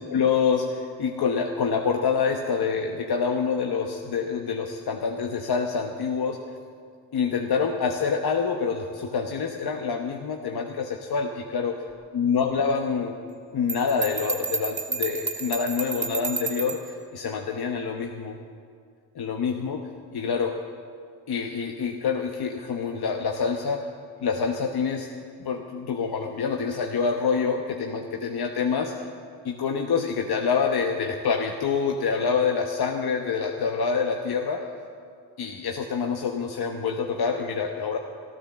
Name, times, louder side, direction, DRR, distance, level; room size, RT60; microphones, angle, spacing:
voice 1, 0.1-6.4 7.1-11.7 12.1-13.2 13.5-18.4 19.1-19.8 20.1-20.6 21.3-23.9 24.2-25.1 25.4-29.1 29.4-34.7 35.4-38.0, left 5 dB, 60° left, 3 dB, 1.1 m, -26 dB
Bell, 13.7-16.9, right 5 dB, 40° right, 2.0 m, -31 dB
14.0 x 12.5 x 7.3 m, 2.2 s
supercardioid pair, 55°, 43 cm